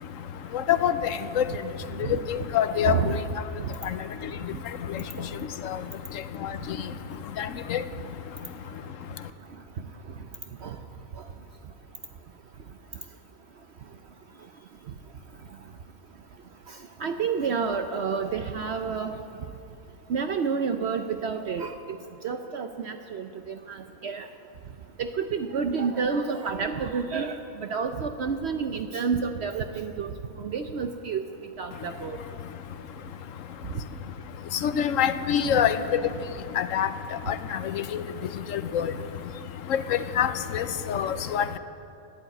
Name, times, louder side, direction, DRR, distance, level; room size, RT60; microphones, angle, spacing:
voice 1, 2.3-3.0 5.6-5.8 6.4-6.5 7.4-7.8 34.6-35.8 36.6-36.9 37.3-38.0 38.5-38.9 39.7-41.5, left 9 dB, 70° left, 11 dB, 1.0 m, -25 dB
voice 2, 2.8-3.2 10.6-10.8 17.0-19.1 20.1-21.7 22.2-23.8 24.0-24.3 25.0-30.1 30.4-31.2 31.6-32.2 35.5-35.6, right 5 dB, 60° right, 7 dB, 0.8 m, -29 dB
12.0 x 11.0 x 8.8 m, 2.7 s
omnidirectional pair, 1.4 m